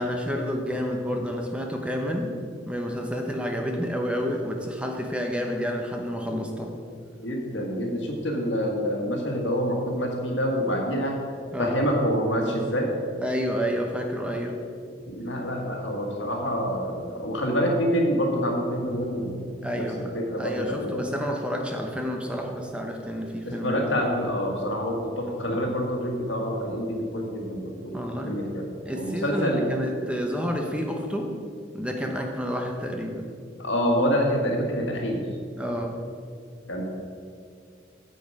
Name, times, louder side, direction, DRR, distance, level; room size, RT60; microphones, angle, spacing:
voice 1, 0.0-2.4 2.7-6.8 11.5-11.9 13.2-14.6 19.6-20.1 20.4-23.9 27.9-28.3 28.9-31.3 31.7-33.3 35.6-36.0, equal, 5° right, 2 dB, 0.8 m, -29 dB
voice 2, 7.2-11.2 11.6-12.9 15.1-19.4 19.7-21.0 23.4-28.0 28.2-28.7 28.9-29.6 33.6-35.3 36.7-36.8, equal, 80° left, 0 dB, 1.7 m, -27 dB
9.0 x 7.8 x 4.8 m, 2.2 s
head